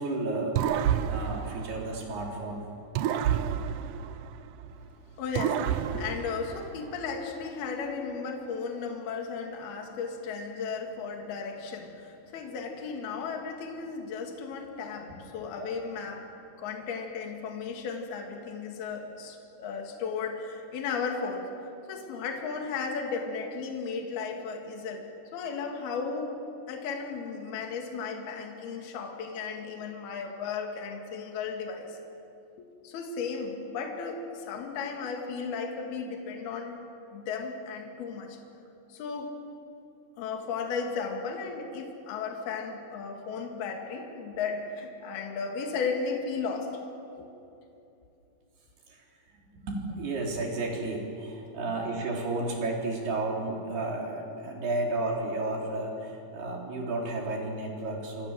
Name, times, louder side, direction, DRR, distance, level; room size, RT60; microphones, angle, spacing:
voice 1, 0.0-2.6 15.6-15.7 48.9-49.0 49.6-58.3, right 2 dB, 70° right, -1 dB, 6.1 m, -32 dB
sound 1, 0.6-2.4 3.0-4.8 5.3-7.1, right 9 dB, 85° right, 1.7 m, -30 dB
voice 2, 5.2-16.3 16.6-21.5 21.9-26.4 26.7-32.0 32.6-36.8 37.1-38.4 38.9-39.3 40.2-46.7 47.1-47.3, left 5 dB, 70° left, 2 dB, 3.9 m, -35 dB
28.0 x 26.0 x 7.6 m, 2.7 s
omnidirectional pair, 4.8 m